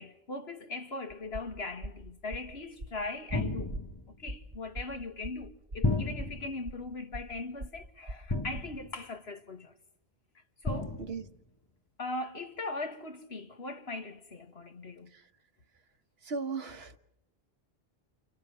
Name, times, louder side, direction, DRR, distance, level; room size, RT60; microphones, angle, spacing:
voice 1, 0.0-3.7 4.2-9.7 10.6-11.0 12.0-15.1, left 2 dB, 90° left, 2.2 m, -39 dB
sound 1, 1.1-8.8, right 1 dB, 50° right, 3.3 m, -43 dB
sound 2, 3.3-4.2 5.8-6.6 8.3-9.0 10.6-11.3, left 2 dB, 25° left, 1.3 m, -33 dB
voice 2, 16.2-17.0, right 4 dB, 80° right, 1.6 m, -37 dB
30.0 x 29.0 x 6.2 m
omnidirectional pair, 1.0 m